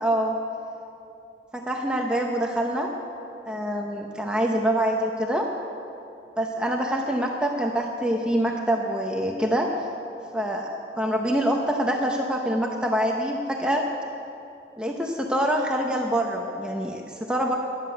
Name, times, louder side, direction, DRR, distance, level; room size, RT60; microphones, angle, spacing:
voice 1, 0.0-0.4 1.5-2.9 3.5-5.5 6.4-9.7 10.3-13.8 14.8-17.6, right 1 dB, 5° right, 0 dB, 0.8 m, -25 dB
13.0 x 11.0 x 7.8 m, 2.7 s
head